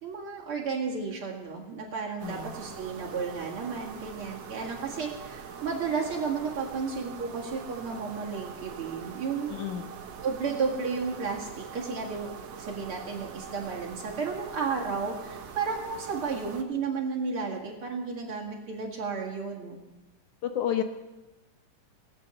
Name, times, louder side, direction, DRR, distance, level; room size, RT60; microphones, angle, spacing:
voice 1, 0.0-9.5 10.2-19.8, right 5 dB, 45° right, -2 dB, 2.5 m, -33 dB
voice 2, 2.2-2.6 9.5-9.9 20.4-20.8, left 10 dB, 70° left, 7 dB, 2.3 m, -30 dB
sound 1, 2.2-16.6, right 7 dB, 60° right, 2.1 m, -43 dB
18.0 x 8.8 x 7.1 m, 1.1 s
omnidirectional pair, 3.7 m